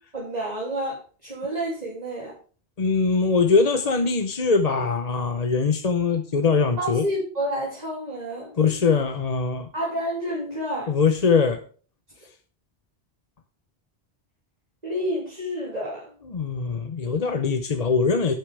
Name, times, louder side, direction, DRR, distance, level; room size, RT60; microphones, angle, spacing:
voice 1, 0.1-2.3 6.8-8.5 9.7-10.9 14.8-16.0, equal, 40° right, -5 dB, 3.0 m, -29 dB
voice 2, 2.8-7.1 8.6-9.7 10.9-11.6 16.3-18.3, left 5 dB, 40° left, 7 dB, 0.9 m, -22 dB
11.5 x 9.4 x 3.4 m, 0.39 s
omnidirectional pair, 1.1 m